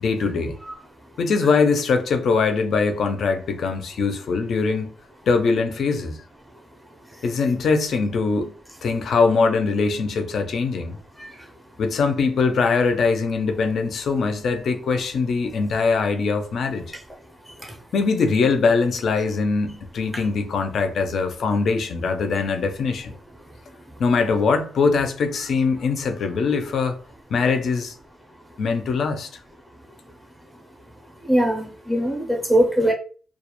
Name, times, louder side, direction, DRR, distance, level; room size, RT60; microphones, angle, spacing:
voice 1, 0.0-0.5 1.2-4.9 5.3-6.2 7.2-8.5 8.8-11.0 11.8-16.9 17.9-23.1 24.0-27.0 27.3-27.9 28.6-29.3, left 4 dB, 60° left, 0.4 m, -22 dB
voice 2, 31.3-32.9, right 1 dB, ahead, 0.5 m, -21 dB
2.2 x 2.0 x 2.9 m
cardioid pair, 130°, 0 cm